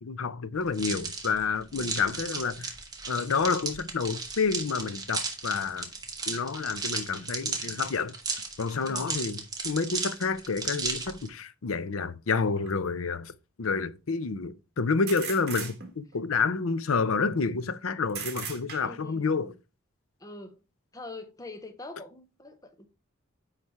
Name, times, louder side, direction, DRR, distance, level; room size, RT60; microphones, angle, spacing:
voice 1, 0.0-2.7 3.1-5.9 6.3-8.1 8.6-13.3 13.6-19.5, left 4 dB, 80° left, 0.6 m, -29 dB
sound 1, 0.7-11.3, right 4 dB, 20° right, 1.4 m, -35 dB
voice 2, 1.7-2.0 8.8-9.2 18.8-19.6 20.2-20.6 20.9-22.9, left 2 dB, 15° left, 0.7 m, -44 dB
sound 2, 12.7-12.8 15.1-16.2 18.1-19.1, right 7 dB, 50° right, 1.7 m, -38 dB
9.8 x 3.3 x 4.6 m
head